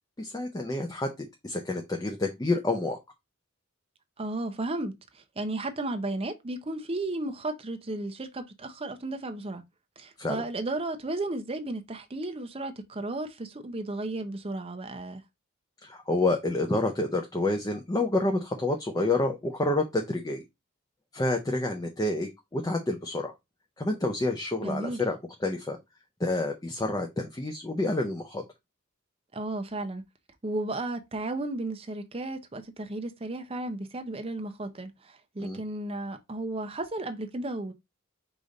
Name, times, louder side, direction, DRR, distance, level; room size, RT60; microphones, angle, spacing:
voice 1, 0.2-3.0 10.2-10.4 15.8-20.4 21.1-23.3 23.8-25.8 26.2-28.4 35.4-35.6, left 2 dB, 15° left, 0.5 m, -28 dB
voice 2, 4.2-9.6 10.0-15.2 24.6-25.0 29.3-30.0 30.4-37.7, right 2 dB, 25° right, 0.6 m, -34 dB
5.0 x 2.6 x 3.9 m
head